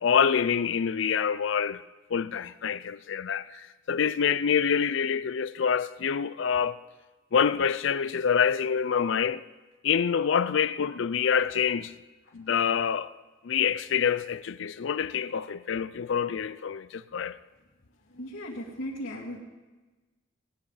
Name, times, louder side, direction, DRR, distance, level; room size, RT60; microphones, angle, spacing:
voice 1, 0.0-1.8 2.1-6.8 7.3-9.4 9.8-11.9 12.3-13.1 13.4-17.4, left 7 dB, 65° left, 0.4 m, -26 dB
voice 2, 18.1-19.4, equal, 80° left, 2.4 m, -37 dB
18.5 x 11.0 x 4.1 m
head